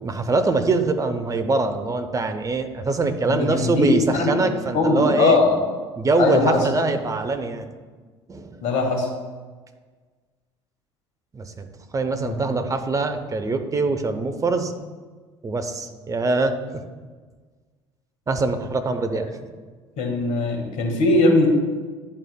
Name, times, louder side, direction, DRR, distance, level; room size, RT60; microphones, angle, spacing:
voice 1, 0.0-5.4 6.0-7.7 8.3-8.6 11.3-11.7 11.9-14.7 15.4-16.6 18.3-19.3, right 3 dB, 20° right, 7 dB, 0.7 m, -23 dB
voice 2, 3.3-4.4 4.7-5.6 6.2-6.6 8.6-9.1 12.2-12.3 20.0-21.5, left 2 dB, 55° left, 1 dB, 1.6 m, -20 dB
10.5 x 4.3 x 2.2 m, 1.4 s
figure-of-eight pair, 60°, 15 cm